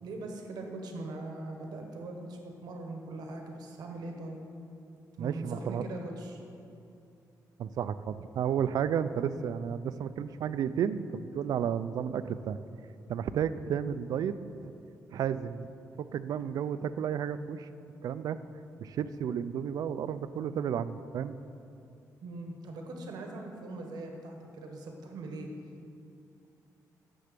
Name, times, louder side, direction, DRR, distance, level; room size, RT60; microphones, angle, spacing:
voice 1, 0.0-4.4 5.2-6.4 22.2-25.5, right 2 dB, 85° right, 2 dB, 1.3 m, -41 dB
voice 2, 5.2-5.8 7.6-12.6 13.1-14.3 14.6-14.7 15.1-15.7 16.0-17.7 18.0-18.4 18.8-21.4, right 8 dB, 70° right, 13 dB, 0.4 m, -32 dB
9.9 x 6.9 x 6.7 m, 2.6 s
wide cardioid pair, 160°, 7 cm